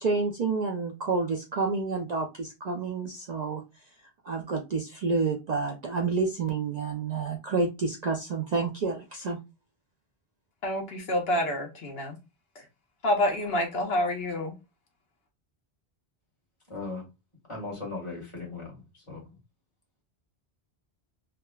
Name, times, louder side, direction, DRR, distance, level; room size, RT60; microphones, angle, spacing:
voice 1, 0.0-3.6 4.2-9.4, right 4 dB, 55° right, 0.5 m, -29 dB
voice 2, 10.6-12.1 12.6-12.7 13.0-14.5, left 1 dB, 70° left, 1.0 m, -28 dB
voice 3, 16.7-17.0 17.5-18.8 19.1-19.2, left 3 dB, 30° left, 1.5 m, -37 dB
3.5 x 2.1 x 2.2 m
omnidirectional pair, 1.1 m